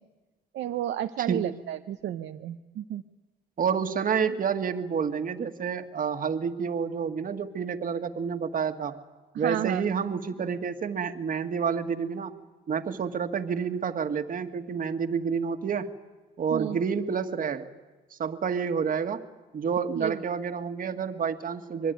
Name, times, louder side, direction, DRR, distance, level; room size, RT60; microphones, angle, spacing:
voice 1, 0.5-3.0 9.3-9.8 16.5-16.8 20.0-20.2, right 11 dB, 70° right, 8 dB, 0.9 m, -32 dB
voice 2, 3.6-9.0 9.4-12.3 12.7-15.9 16.4-17.7 18.2-19.2 19.5-21.9, right 6 dB, 45° right, 7 dB, 1.8 m, -29 dB
25.5 x 22.0 x 9.4 m, 1.2 s
cardioid pair, 100°, 19 cm